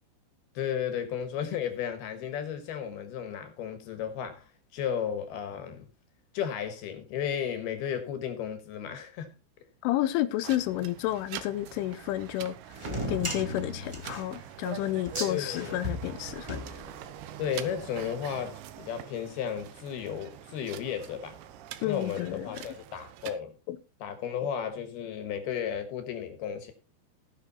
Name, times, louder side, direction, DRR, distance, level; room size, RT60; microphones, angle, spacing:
voice 1, 0.5-5.9 6.3-9.4 15.3-15.8 17.4-21.4 21.8-23.6 24.0-26.7, left 8 dB, 65° left, 3.0 m, -34 dB
voice 2, 9.8-12.6 13.1-16.6 21.8-22.6 23.7-23.8, left 14 dB, 90° left, 3.4 m, -31 dB
sound 1, 10.4-23.4, right 13 dB, 80° right, 3.0 m, -45 dB
sound 2, 12.7-17.3, equal, 10° right, 1.6 m, -36 dB
sound 3, 14.8-22.1, right 2 dB, 60° right, 5.3 m, -57 dB
17.5 x 6.5 x 4.2 m
omnidirectional pair, 5.4 m